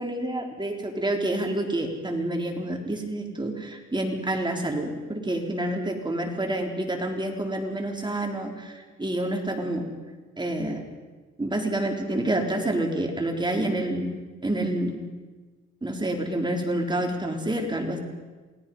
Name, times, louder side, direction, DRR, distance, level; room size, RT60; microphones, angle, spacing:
voice 1, 0.0-9.8 10.4-10.8 11.4-15.1 15.8-18.0, right 1 dB, 15° right, 2 dB, 4.1 m, -28 dB
29.0 x 18.5 x 5.6 m, 1.3 s
cardioid pair, 90°, 30 cm